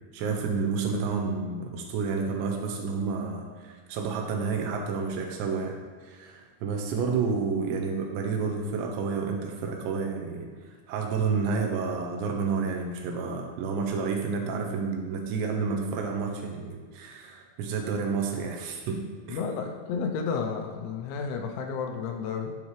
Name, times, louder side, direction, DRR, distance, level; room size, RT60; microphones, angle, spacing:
voice 1, 0.1-19.0 19.3-19.4, right 5 dB, 80° right, 2 dB, 2.8 m, -30 dB
voice 2, 19.3-22.6, left 5 dB, 80° left, 3 dB, 2.9 m, -31 dB
10.5 x 5.2 x 3.2 m, 1.5 s
omnidirectional pair, 5.5 m